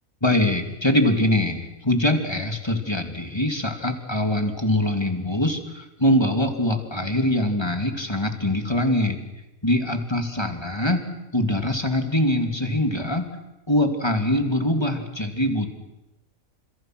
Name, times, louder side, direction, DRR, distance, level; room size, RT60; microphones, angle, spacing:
voice 1, 0.2-9.2 9.6-11.0 11.3-13.3 13.7-15.7, left 1 dB, 20° left, 5 dB, 2.9 m, -23 dB
29.5 x 28.0 x 6.2 m, 0.94 s
omnidirectional pair, 1.5 m